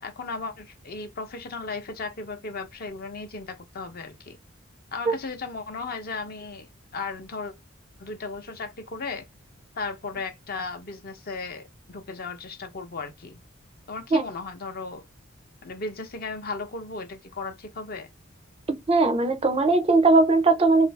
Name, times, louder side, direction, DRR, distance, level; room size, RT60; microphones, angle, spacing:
voice 1, 0.0-4.4 4.9-7.5 8.0-9.3 9.8-13.4 13.9-15.0 15.6-18.1, left 4 dB, 50° left, 0.6 m, -36 dB
voice 2, 18.9-20.9, right 3 dB, 30° right, 0.4 m, -19 dB
2.6 x 2.5 x 3.1 m
head